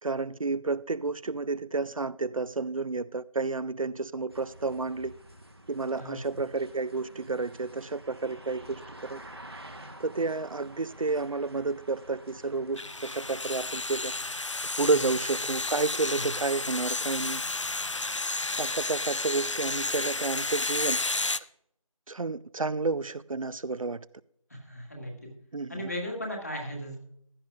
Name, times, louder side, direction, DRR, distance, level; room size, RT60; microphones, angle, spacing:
voice 1, 0.0-5.1 5.7-9.2 10.0-14.1 14.8-17.4 17.8-17.9 18.6-21.0 22.1-24.1 25.5-25.7, right 3 dB, 70° right, 0.4 m, -31 dB
sound 1, 4.3-14.4, right 1 dB, 45° right, 1.1 m, -49 dB
voice 2, 6.0-6.5 14.8-15.0 16.1-16.2 24.5-25.1 25.7-27.0, equal, 30° left, 2.0 m, -37 dB
sound 2, 12.8-21.4, left 3 dB, 60° left, 0.5 m, -32 dB
15.5 x 11.0 x 2.4 m
figure-of-eight pair, 175°, 18 cm